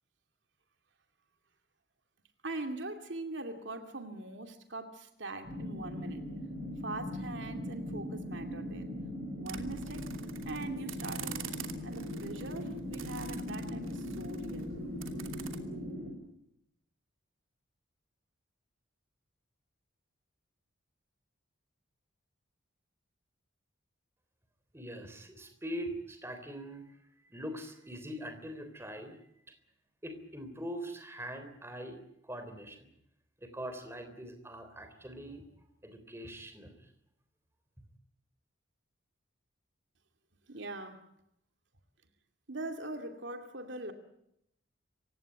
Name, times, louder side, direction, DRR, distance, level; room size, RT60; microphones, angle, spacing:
voice 1, 2.4-6.2 6.8-8.9 9.3-10.1 10.5-11.5 11.8-14.8 40.5-41.1 42.5-43.9, right 2 dB, 60° right, 2.4 m, -42 dB
sound 1, 5.4-16.1, left 1 dB, 30° right, 7.9 m, -40 dB
sound 2, 9.5-15.6, right 7 dB, 80° right, 2.7 m, -46 dB
voice 2, 24.7-29.2 29.5-29.6 30.0-32.9 33.4-35.4 35.8-36.9, equal, 10° right, 3.5 m, -43 dB
27.0 x 17.0 x 9.1 m
head